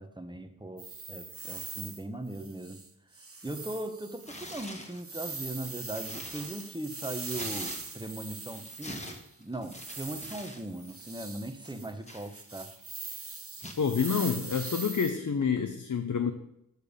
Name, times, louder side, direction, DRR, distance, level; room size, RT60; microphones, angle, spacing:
voice 1, 0.0-2.8 3.4-12.7, right 1 dB, 15° right, 8 dB, 0.9 m, -39 dB
sound 1, 0.8-2.0 2.3-2.9 3.1-9.3 9.6-15.1, right 3 dB, 40° right, 1.0 m, -42 dB
Tearing, 4.2-5.0 5.5-8.2 8.5-10.6 10.9-11.1 11.6-12.8 13.6-13.9, left 1 dB, 20° left, 1.3 m, -45 dB
voice 2, 13.8-16.3, left 6 dB, 55° left, 7 dB, 0.7 m, -28 dB
6.7 x 6.7 x 5.2 m, 0.80 s
wide cardioid pair, 50°, 35 cm